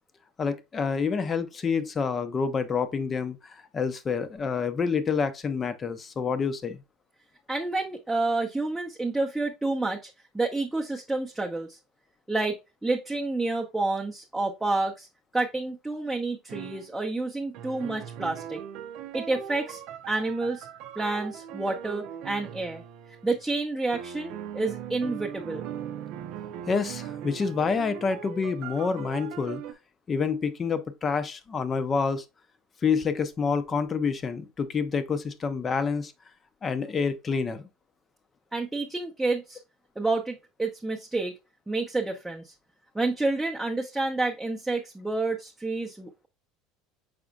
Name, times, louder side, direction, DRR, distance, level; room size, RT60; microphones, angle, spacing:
voice 1, 0.4-6.8 26.7-29.6 30.1-32.2 32.8-36.1 36.6-37.7, left 5 dB, 30° left, 0.6 m, -28 dB
voice 2, 7.5-10.1 10.3-11.8 12.3-15.1 15.3-18.6 19.1-19.8 20.1-20.7 21.0-22.8 23.2-25.6 38.5-39.6 40.0-41.3 41.7-42.5 42.9-46.3, right 2 dB, 10° right, 0.7 m, -29 dB
sound 1, 16.5-16.9 17.5-23.5 23.9-29.7, right 10 dB, 65° right, 0.5 m, -39 dB
5.0 x 4.1 x 2.4 m
supercardioid pair, 100°, 0 cm